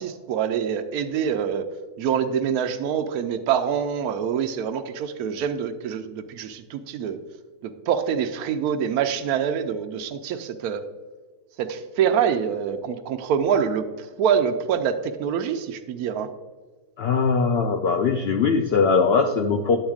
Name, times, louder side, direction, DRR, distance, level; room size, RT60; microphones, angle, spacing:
voice 1, 0.0-1.6 2.0-7.2 7.6-10.8 11.6-16.3, right 8 dB, 75° right, 8 dB, 1.0 m, -25 dB
voice 2, 17.0-19.8, left 5 dB, 80° left, 4 dB, 0.5 m, -21 dB
10.0 x 7.8 x 2.4 m, 1.4 s
omnidirectional pair, 1.7 m